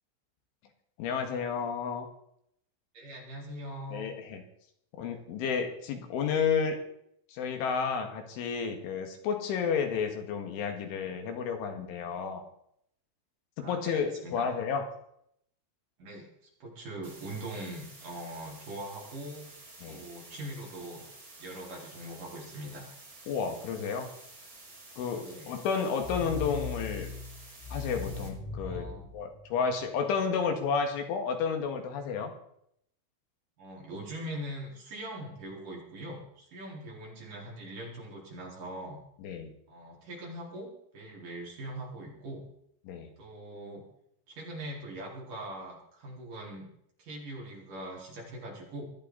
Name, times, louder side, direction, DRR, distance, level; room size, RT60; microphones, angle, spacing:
voice 1, 1.0-2.1 3.9-4.4 5.0-6.8 7.3-12.4 13.6-14.9 19.8-20.0 23.3-24.1 25.0-27.1 27.7-28.9 29.1-32.3 39.2-39.5 42.9-43.1, left 6 dB, 75° left, 4 dB, 4.2 m, -31 dB
voice 2, 2.9-4.1 13.6-14.5 16.0-16.3 16.6-19.5 19.8-21.0 21.4-22.9 25.2-25.5 28.6-29.1 33.6-39.0 39.7-42.5 43.2-43.9 44.3-46.7 47.0-48.9, right 1 dB, 45° right, -3 dB, 5.6 m, -42 dB
sound 1, 17.0-28.3, right 2 dB, 20° right, 3.5 m, -51 dB
sound 2, 26.0-30.0, left 4 dB, 60° left, 5.4 m, -39 dB
21.0 x 14.0 x 4.1 m, 0.71 s
omnidirectional pair, 5.7 m